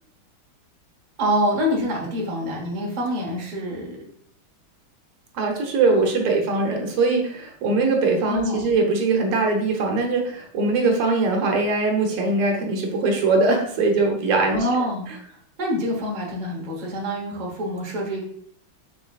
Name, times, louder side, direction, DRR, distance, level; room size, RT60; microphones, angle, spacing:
voice 1, 1.2-4.0 8.3-8.7 14.5-18.2, equal, 30° right, -2 dB, 0.8 m, -26 dB
voice 2, 5.3-14.7, right 3 dB, 85° right, 2 dB, 1.8 m, -21 dB
5.4 x 3.9 x 2.4 m, 0.63 s
omnidirectional pair, 2.4 m